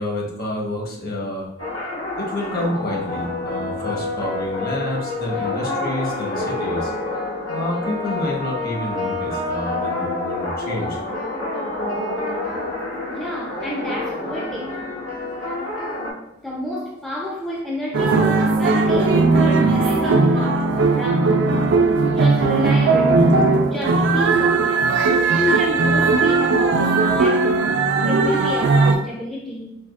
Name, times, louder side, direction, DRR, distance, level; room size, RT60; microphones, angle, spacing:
voice 1, 0.0-1.5 2.1-6.9 7.5-11.0, left 1 dB, 50° left, 0.9 m, -28 dB
sound 1, 1.6-16.1, left 2 dB, 85° left, 1.0 m, -27 dB
voice 2, 13.1-14.8 16.4-21.5 22.1-25.0 25.3-27.7 28.0-29.8, left 1 dB, ahead, 0.4 m, -30 dB
sound 2, 17.9-28.9, right 3 dB, 65° right, 0.4 m, -17 dB
4.5 x 2.7 x 2.3 m
head